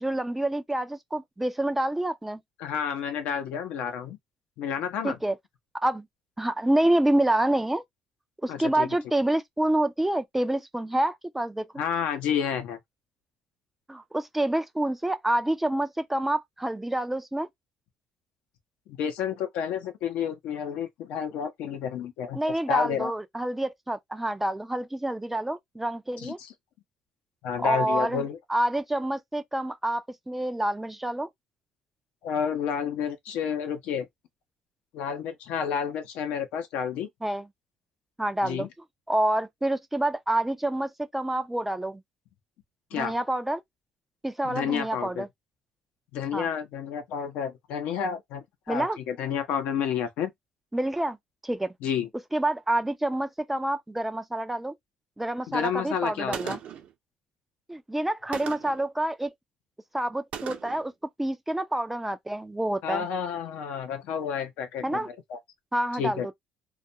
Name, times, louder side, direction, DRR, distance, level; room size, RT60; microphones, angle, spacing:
voice 1, 0.0-2.4 5.0-5.4 5.8-6.1 6.4-7.8 8.4-11.8 13.9-17.5 22.3-26.4 27.6-28.2 28.5-31.3 37.2-37.5 38.2-38.7 39.1-42.0 42.9-43.6 44.2-45.3 46.3-46.5 48.7-49.0 50.7-51.2 51.4-51.7 52.3-54.7 55.2-56.6 57.7-59.3 59.9-60.9 61.2-63.1 64.8-65.1 65.7-66.3, right 1 dB, 10° right, 0.3 m, -27 dB
voice 2, 2.6-4.2 4.6-5.2 8.5-8.9 11.8-12.8 18.9-22.4 22.7-23.1 26.2-26.5 27.4-28.4 32.2-34.1 34.9-37.1 38.4-38.7 42.9-43.1 44.4-45.2 46.1-50.3 51.8-52.1 55.5-56.6 62.8-65.0 65.3-65.4 66.0-66.3, left 8 dB, 80° left, 0.7 m, -30 dB
Gunshot gunfire, 56.3-56.9 58.3-58.9 60.3-60.9, right 8 dB, 60° right, 0.6 m, -37 dB
2.3 x 2.2 x 2.6 m
cardioid pair, 110°, 2 cm